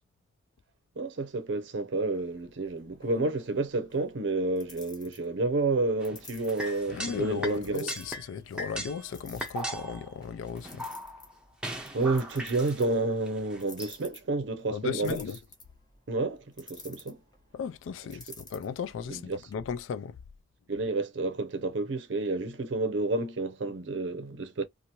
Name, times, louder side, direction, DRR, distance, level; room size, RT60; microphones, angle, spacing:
voice 1, 1.0-8.0 11.9-15.2 16.1-17.2 19.1-19.4 20.7-24.6, right 3 dB, 65° right, 0.6 m, -30 dB
sound 1, 2.0-19.5, left 3 dB, 20° left, 0.9 m, -53 dB
sound 2, 6.0-7.6 7.9-8.3 8.6-10.2 10.6-11.4 11.6-12.9 13.3-13.9, right 1 dB, 5° right, 0.6 m, -38 dB
voice 2, 6.9-10.9 14.7-15.4 17.5-20.2, left 7 dB, 80° left, 0.3 m, -36 dB
2.9 x 2.5 x 2.8 m
head